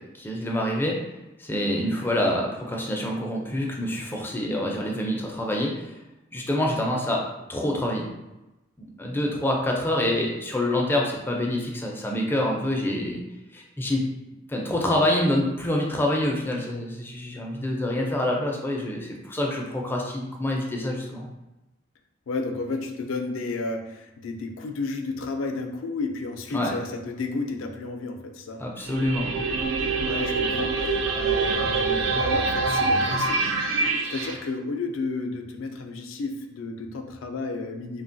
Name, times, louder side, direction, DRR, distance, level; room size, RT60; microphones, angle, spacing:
voice 1, 0.1-1.0 1.4-5.9 6.3-7.2 7.5-8.1 8.8-13.2 13.5-14.0 14.5-21.3 26.5-26.7 28.6-29.3, left 1 dB, 10° left, -1 dB, 0.4 m, -26 dB
voice 2, 22.3-28.6 29.8-33.5 34.1-38.0, left 3 dB, 80° left, 4 dB, 0.4 m, -32 dB
sound 1, 28.8-34.4, right 3 dB, 75° right, 0.3 m, -25 dB
3.0 x 2.1 x 2.6 m, 1.0 s
head